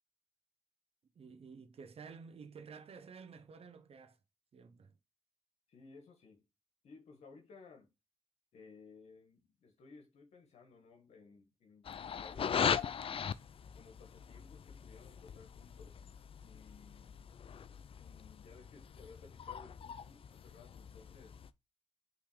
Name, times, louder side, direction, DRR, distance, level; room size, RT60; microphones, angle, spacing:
voice 1, 1.1-4.2 4.5-4.9, right 5 dB, 65° right, 0.7 m, -52 dB
voice 2, 5.7-6.4 6.8-7.9 8.5-12.6 13.7-16.0 16.4-17.2 17.9-21.4, left 4 dB, 80° left, 1.3 m, -58 dB
sound 1, 11.8-21.5, left 7 dB, 55° left, 0.4 m, -40 dB
5.8 x 3.3 x 4.9 m
supercardioid pair, 40°, 11 cm